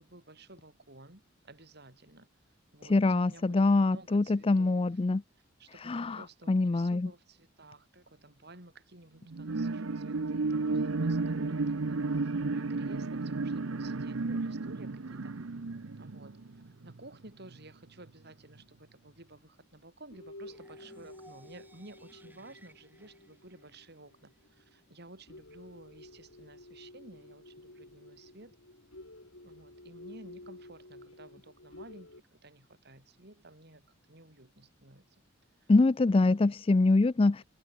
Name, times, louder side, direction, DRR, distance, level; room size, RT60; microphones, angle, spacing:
voice 1, 0.0-2.3 2.7-4.9 5.6-15.3 16.0-16.4 16.8-28.6 29.4-35.0 36.3-36.5, right 2 dB, 55° right, 6.8 m, -53 dB
voice 2, 2.9-5.2 5.8-7.1 35.7-37.4, left 3 dB, 30° left, 0.4 m, -24 dB
sound 1, 9.3-17.1 17.5-17.6, right 3 dB, 85° right, 0.8 m, -33 dB
sound 2, 15.2-16.8 17.3-17.4 18.4-18.5 19.1-19.2 19.6-19.8 20.1-32.2, left 1 dB, 75° left, 4.9 m, -53 dB
sound 3, 20.4-24.4, right 1 dB, 10° right, 4.7 m, -61 dB
head